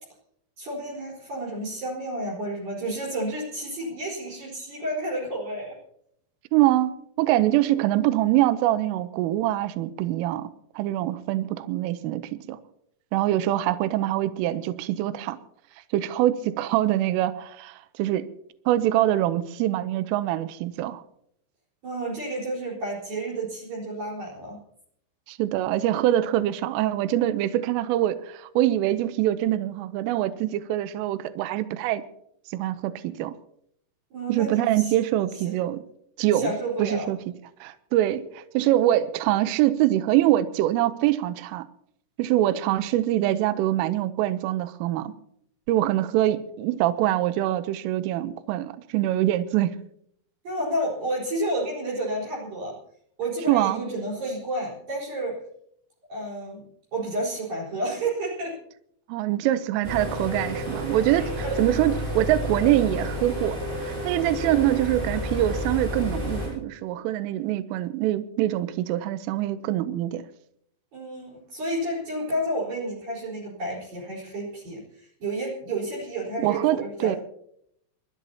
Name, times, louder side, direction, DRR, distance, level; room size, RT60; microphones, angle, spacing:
voice 1, 0.6-5.8 21.8-24.6 34.1-34.9 36.3-37.1 50.4-52.8 53.2-55.4 56.1-56.6 56.9-58.6 61.1-61.6 70.9-77.2, right 1 dB, 45° right, 0 dB, 5.8 m, -31 dB
voice 2, 6.5-10.5 10.8-12.6 13.1-15.4 15.9-18.3 18.7-21.0 25.3-32.0 32.5-33.3 34.3-35.8 36.2-36.5 36.8-37.2 37.6-41.7 42.2-45.1 45.7-49.8 53.5-53.8 59.1-61.3 61.6-70.2 76.4-77.2, right 14 dB, 80° right, 12 dB, 3.3 m, -24 dB
sound 1, 59.8-66.5, equal, 60° right, 10.0 m, -30 dB
29.0 x 13.0 x 2.8 m, 0.71 s
omnidirectional pair, 5.9 m